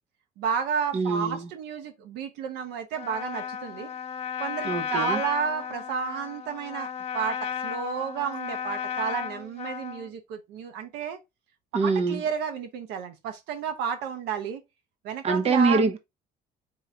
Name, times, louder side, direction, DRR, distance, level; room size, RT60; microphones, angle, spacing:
voice 1, 0.4-3.9 4.4-11.2 11.8-14.6 15.0-15.8, right 7 dB, 90° right, 1.0 m, -31 dB
voice 2, 0.9-1.5 4.6-5.2 11.7-12.2 15.2-16.0, right 4 dB, 40° right, 0.9 m, -24 dB
Trumpet, 2.9-10.1, left 8 dB, 40° left, 1.0 m, -34 dB
4.7 x 3.0 x 3.5 m
cardioid pair, 110°, 17 cm